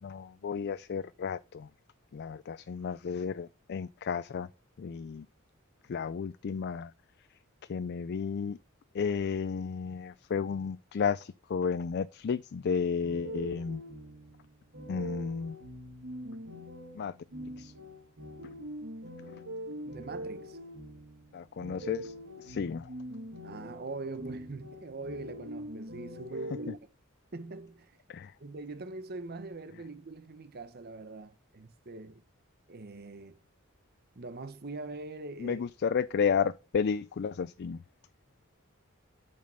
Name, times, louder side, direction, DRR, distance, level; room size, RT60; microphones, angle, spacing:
voice 1, 0.0-1.7 2.1-4.5 4.8-5.3 5.9-6.9 7.7-8.6 8.9-13.8 14.9-15.6 17.0-17.1 17.6-17.7 21.3-22.9 28.1-28.3 35.4-37.8, left 6 dB, 50° left, 0.4 m, -32 dB
sound 1, 13.0-26.7, equal, 65° right, 1.9 m, -43 dB
voice 2, 19.9-20.6 23.4-26.7 27.3-28.0 28.4-32.2 32.7-33.4 34.1-35.7, right 3 dB, 50° right, 0.9 m, -42 dB
8.8 x 5.4 x 5.5 m
head